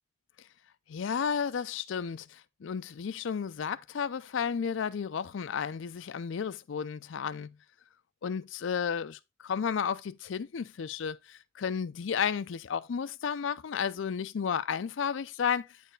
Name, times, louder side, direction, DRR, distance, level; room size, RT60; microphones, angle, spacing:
voice 1, 0.9-7.6 8.2-15.8, left 7 dB, 65° left, 0.4 m, -33 dB
9.0 x 4.5 x 3.2 m
head